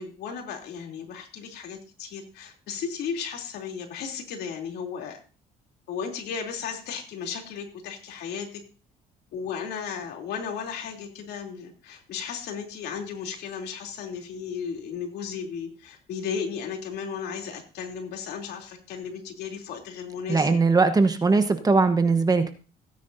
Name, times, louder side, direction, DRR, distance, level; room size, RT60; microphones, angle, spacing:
voice 1, 0.0-5.2 5.9-8.6 9.3-20.5, left 6 dB, 75° left, 2 dB, 3.2 m, -35 dB
voice 2, 20.3-22.5, right 4 dB, 20° right, 8 dB, 1.2 m, -20 dB
17.5 x 9.8 x 2.7 m, 0.35 s
cardioid pair, 110°, 17 cm